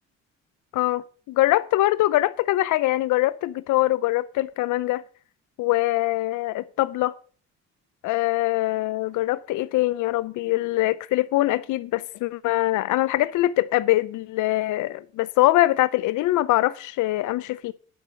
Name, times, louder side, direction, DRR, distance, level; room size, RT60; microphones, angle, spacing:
voice 1, 0.7-5.0 5.6-7.1 8.0-17.7, left 17 dB, 85° left, 0.5 m, -23 dB
11.0 x 5.6 x 7.4 m
cardioid pair, 90°, 30 cm